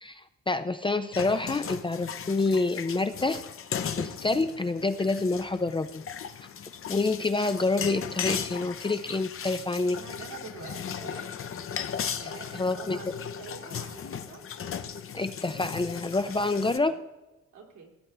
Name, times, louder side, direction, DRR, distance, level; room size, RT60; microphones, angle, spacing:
voice 1, 0.0-3.4 4.0-6.0 6.9-10.0 12.5-13.0 15.1-16.9, left 3 dB, 15° left, 10 dB, 0.4 m, -27 dB
sound 1, 1.1-16.8, left 7 dB, 45° left, 0.7 m, -37 dB
voice 2, 9.9-11.3 12.1-14.4 16.3-17.0 17.5-17.9, right 5 dB, 75° right, 0 dB, 2.6 m, -46 dB
16.0 x 8.4 x 3.4 m, 1.0 s
cardioid pair, 90°, 30 cm